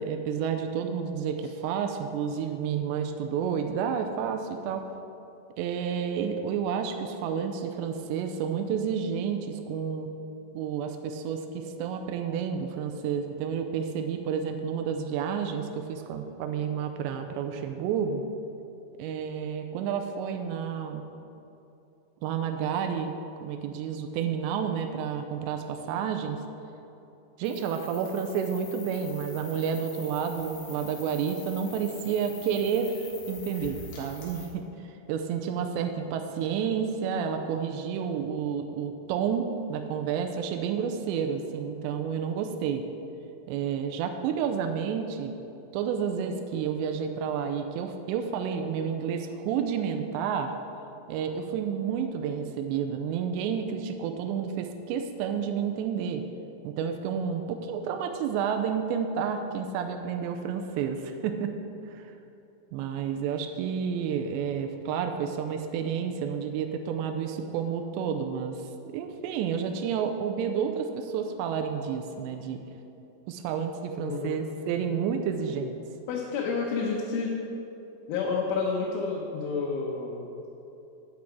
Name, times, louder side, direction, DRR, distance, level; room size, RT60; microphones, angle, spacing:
voice 1, 0.0-4.8 5.6-10.1 10.5-18.2 19.0-21.0 22.2-23.1 23.4-26.4 27.4-42.8 43.5-45.3 45.7-50.5 51.1-56.2 56.6-61.5 61.9-62.1 62.7-68.6 68.9-72.6 73.3-75.8, right 7 dB, 85° right, 5 dB, 2.6 m, -30 dB
sound 1, 27.4-34.5, left 4 dB, 55° left, 2.5 m, -45 dB
voice 2, 74.0-74.4 76.1-77.3 78.1-80.5, left 4 dB, 85° left, -3 dB, 3.4 m, -30 dB
8.6 x 8.3 x 4.6 m, 3.0 s
omnidirectional pair, 5.4 m